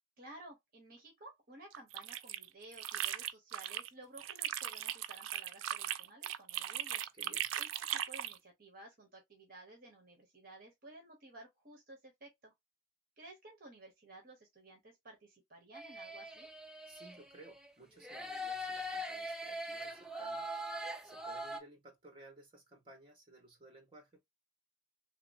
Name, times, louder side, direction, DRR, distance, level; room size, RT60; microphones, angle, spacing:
voice 1, 0.2-7.0 7.6-12.5 13.2-16.5, right 1 dB, 45° right, 0.9 m, -55 dB
sound 1, 1.7-3.9 4.2-8.4, right 11 dB, 80° right, 0.3 m, -38 dB
voice 2, 7.1-7.5 16.9-20.5 21.0-24.2, right 1 dB, 25° right, 1.2 m, -57 dB
sound 2, 15.7-17.7 18.0-21.6, equal, 5° right, 0.3 m, -42 dB
3.0 x 2.9 x 2.5 m
head